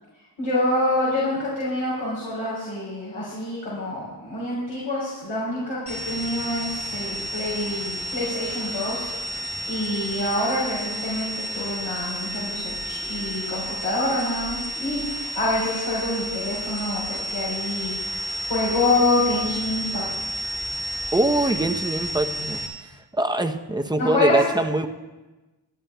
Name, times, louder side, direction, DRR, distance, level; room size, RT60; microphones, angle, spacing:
voice 1, 0.4-9.1 9.7-20.0 24.0-24.4, left 2 dB, 85° left, -9 dB, 4.2 m, -26 dB
sound 1, 5.9-22.7, right 1 dB, 60° left, 2.9 m, -31 dB
voice 2, 21.1-22.6 23.1-24.9, right 1 dB, 10° right, 6 dB, 0.7 m, -23 dB
25.5 x 11.0 x 2.3 m, 1.1 s
cardioid pair, 65°, 45 cm